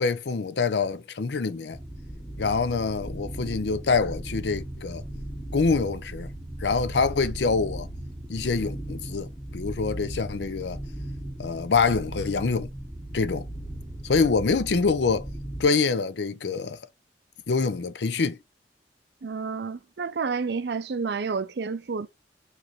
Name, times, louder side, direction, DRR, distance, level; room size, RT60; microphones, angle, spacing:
voice 1, 0.0-1.8 2.4-5.0 5.5-6.3 6.6-7.9 8.3-10.8 11.4-12.7 13.1-13.4 14.0-15.3 15.6-16.8 17.5-18.4, left 4 dB, 70° left, 0.5 m, -25 dB
sound 1, 1.7-15.6, right 1 dB, 5° right, 0.8 m, -37 dB
voice 2, 19.2-22.1, right 5 dB, 70° right, 0.5 m, -30 dB
4.9 x 3.3 x 3.1 m
head